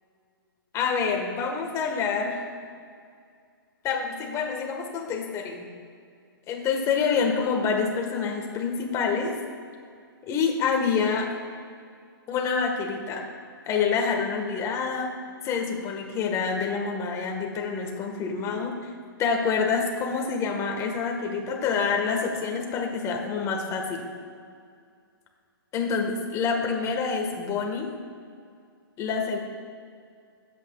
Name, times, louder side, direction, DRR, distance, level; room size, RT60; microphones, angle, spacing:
voice 1, 0.7-2.4 3.8-5.7 6.5-9.4 10.2-11.3 12.3-13.3 13.7-15.1 15.4-18.8 19.2-24.1 25.7-27.9 29.0-29.4, left 5 dB, 25° left, 2 dB, 1.5 m, -27 dB
24.0 x 8.5 x 2.4 m, 2.2 s
hypercardioid pair, 130°, 12 cm